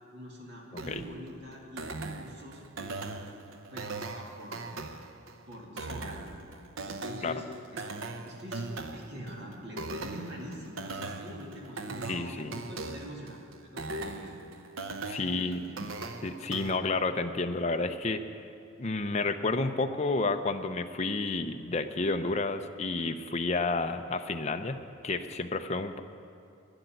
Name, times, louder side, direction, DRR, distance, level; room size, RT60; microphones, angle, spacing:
voice 1, 0.1-3.1 3.7-4.7 5.5-6.4 6.8-7.5 7.7-14.5 15.1-15.8, equal, 55° right, -2 dB, 2.4 m, -44 dB
sound 1, 0.8-16.8, right 3 dB, 75° right, 0.9 m, -40 dB
voice 2, 12.1-12.5 15.1-15.6 16.2-18.2 18.8-26.0, left 3 dB, 35° left, 6 dB, 0.6 m, -30 dB
11.5 x 10.0 x 9.3 m, 2.6 s
head